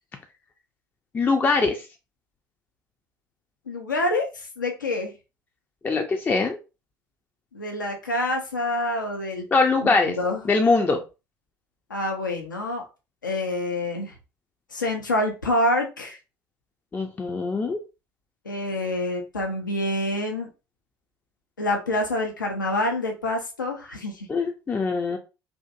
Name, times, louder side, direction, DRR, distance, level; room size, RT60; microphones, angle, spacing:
voice 1, 1.1-1.9 5.8-6.6 9.5-10.2 10.5-11.0 16.9-17.8 24.3-25.2, left 3 dB, 20° left, 4 dB, 0.3 m, -22 dB
voice 2, 3.7-5.1 7.5-9.5 10.1-10.4 11.9-12.8 13.2-14.2 14.7-16.2 18.4-20.5 21.6-24.3, left 1 dB, 85° left, 3 dB, 0.5 m, -27 dB
2.5 x 2.4 x 2.3 m, 0.29 s
figure-of-eight pair, 60°, 10 cm